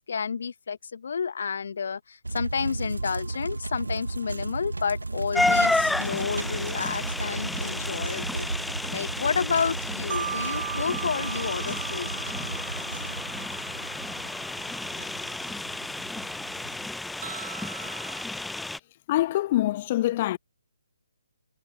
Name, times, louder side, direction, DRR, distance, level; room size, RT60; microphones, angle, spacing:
voice 1, 0.1-8.5 8.9-12.2, left 6 dB, 50° left, 1.4 m, -30 dB
sound 1, 2.2-16.9, right 2 dB, 70° right, 1.9 m, -35 dB
sound 2, 3.0-6.7 7.6-7.7 9.9-15.5 15.7-15.8 16.3-16.4 17.2-18.2, right 8 dB, 45° right, 2.8 m, -40 dB
sound 3, 5.3-18.8, left 2 dB, ahead, 0.4 m, -31 dB
voice 2, 19.1-20.4, left 15 dB, 30° left, 1.5 m, -25 dB
figure-of-eight pair, 140°, 0 cm